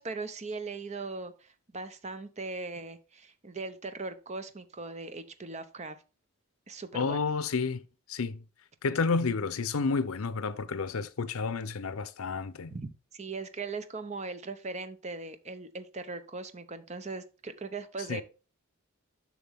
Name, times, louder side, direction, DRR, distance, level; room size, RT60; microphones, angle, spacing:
voice 1, 0.0-6.0 6.7-7.2 12.7-18.2, right 3 dB, 30° right, 0.7 m, -39 dB
voice 2, 6.9-7.8 8.1-8.4 8.8-12.8 18.1-18.2, left 4 dB, 80° left, 0.6 m, -30 dB
7.2 x 6.1 x 3.5 m
head